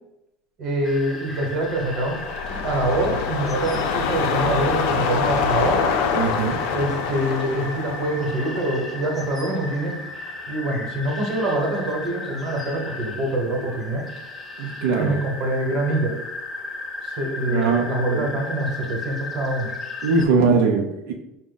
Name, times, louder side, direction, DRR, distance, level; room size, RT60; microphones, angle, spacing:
voice 1, 0.6-5.8 6.7-10.0 10.5-14.0 15.0-16.2 17.0-19.7, right 1 dB, 40° right, 1 dB, 1.0 m, -25 dB
sound 1, 0.8-20.3, left 2 dB, 15° left, 0.5 m, -36 dB
sound 2, 1.5-9.9 10.3-10.4, left 6 dB, 85° left, 0.5 m, -26 dB
voice 2, 6.1-6.6 14.6-15.2 17.5-17.8 18.1-18.3 20.0-21.1, right 4 dB, 85° right, 1 dB, 0.5 m, -21 dB
4.7 x 2.1 x 3.9 m, 0.89 s
cardioid pair, 155°, 0 cm